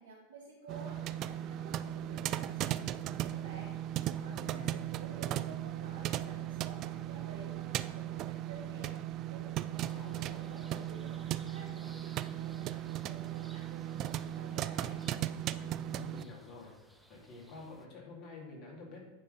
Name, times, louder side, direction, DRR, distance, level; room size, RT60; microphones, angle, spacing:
voice 1, 0.0-3.7 4.0-15.0, right 3 dB, 80° right, -3 dB, 1.3 m, -52 dB
sound 1, 0.7-16.2, right 12 dB, 45° right, 0.3 m, -37 dB
voice 2, 4.3-4.8 9.8-10.4 15.8-16.7 17.1-19.0, left 2 dB, 45° left, -1 dB, 2.7 m, -49 dB
sound 2, 9.8-17.9, equal, 5° right, 0.8 m, -60 dB
9.1 x 3.8 x 5.2 m, 1.1 s
hypercardioid pair, 105°, 0 cm